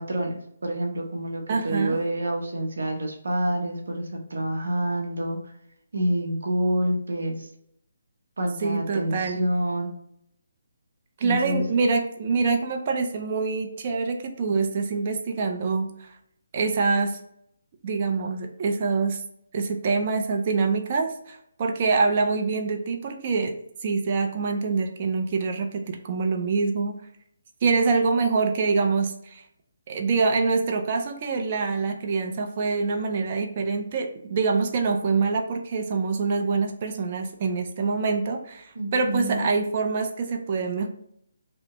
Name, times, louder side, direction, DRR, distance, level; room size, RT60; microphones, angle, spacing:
voice 1, 0.0-5.4 5.9-7.5 8.4-9.9 11.2-11.6 38.8-39.4, right 1 dB, 75° right, 1 dB, 0.7 m, -27 dB
voice 2, 1.5-2.0 8.6-9.5 11.2-16.1 16.5-17.2 17.8-19.2 19.5-27.0 27.6-29.4 29.9-40.9, right 4 dB, 40° right, 4 dB, 0.4 m, -25 dB
2.8 x 2.1 x 2.9 m, 0.72 s
hypercardioid pair, 155°, 0 cm